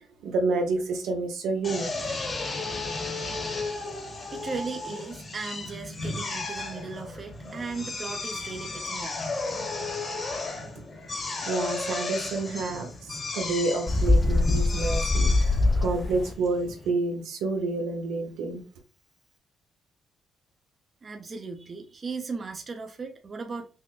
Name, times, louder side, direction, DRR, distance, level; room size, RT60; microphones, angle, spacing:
voice 1, 0.2-2.1 11.5-12.9 13.3-18.6, right 3 dB, 85° right, 0.9 m, -29 dB
Drill, 1.6-16.9, left 3 dB, 40° left, 1.2 m, -34 dB
voice 2, 4.3-9.5 21.0-23.7, right 4 dB, 35° right, 0.7 m, -37 dB
Bird, 13.9-16.3, left 2 dB, 20° left, 0.3 m, -23 dB
5.6 x 2.1 x 2.4 m
cardioid pair, 85°, 0 cm